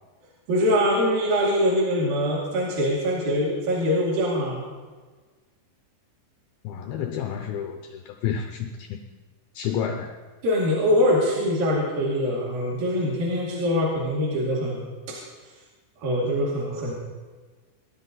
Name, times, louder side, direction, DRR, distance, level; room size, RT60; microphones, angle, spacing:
voice 1, 0.5-4.6 10.4-15.2 16.0-16.9, equal, 55° right, -6 dB, 3.9 m, -23 dB
voice 2, 6.6-9.0 9.5-10.2, left 8 dB, 90° left, 5 dB, 2.1 m, -30 dB
24.5 x 11.5 x 4.1 m, 1.4 s
omnidirectional pair, 5.3 m